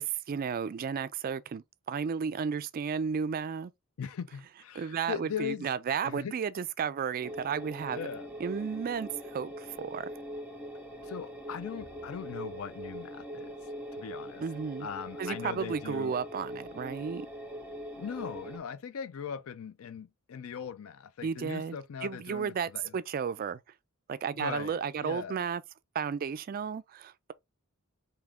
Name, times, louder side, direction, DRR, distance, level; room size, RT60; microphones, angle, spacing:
voice 1, 0.0-3.7 4.7-8.0 8.4-10.1 14.4-14.9 15.2-17.3 21.2-23.6 24.1-25.6 25.9-27.3, right 6 dB, 45° right, 0.3 m, -33 dB
voice 2, 4.0-5.7 6.0-6.3 7.9-8.3 11.0-13.5 13.9-14.4 14.8-16.1 18.0-23.0 24.3-25.4, left 7 dB, 80° left, 0.4 m, -40 dB
sound 1, 7.2-18.6, equal, 10° right, 0.8 m, -42 dB
3.6 x 2.8 x 3.4 m
head